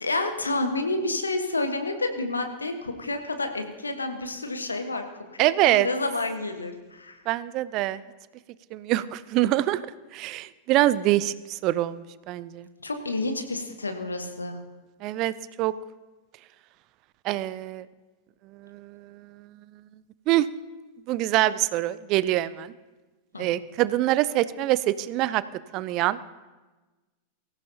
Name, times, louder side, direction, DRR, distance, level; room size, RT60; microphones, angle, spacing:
voice 1, 0.0-5.0 5.3-7.2 12.8-14.6 23.3-23.5, left 2 dB, 75° left, 6 dB, 1.4 m, -29 dB
voice 2, 5.4-5.9 7.3-8.0 8.7-9.8 10.1-12.7 15.0-15.3 15.6-15.7 17.2-17.8 18.7-19.0 20.3-20.5 21.1-22.7 23.4-25.4 25.7-26.2, right 15 dB, 40° right, 17 dB, 0.5 m, -24 dB
23.0 x 14.5 x 2.9 m, 1.2 s
figure-of-eight pair, 90°, 0 cm